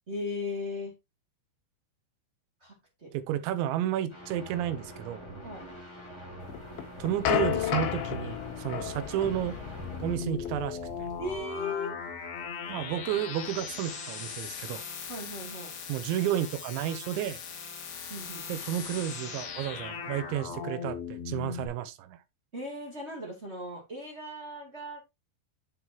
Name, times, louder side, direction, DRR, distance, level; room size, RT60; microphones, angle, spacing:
voice 1, 0.1-0.9 2.6-3.1 5.4-5.6 11.2-11.9 15.1-15.7 18.1-18.5 22.5-25.0, left 2 dB, 25° right, 1.6 m, -37 dB
voice 2, 3.1-5.3 7.0-9.6 10.0-11.1 12.7-14.8 15.9-17.4 18.5-22.2, right 11 dB, 80° right, 3.0 m, -32 dB
sound 1, 4.1-10.1, right 1 dB, 5° left, 3.1 m, -44 dB
sound 2, 6.5-11.4, left 10 dB, 75° left, 3.6 m, -33 dB
sound 3, 9.8-21.7, left 6 dB, 55° left, 2.8 m, -39 dB
8.2 x 7.6 x 2.9 m
omnidirectional pair, 5.6 m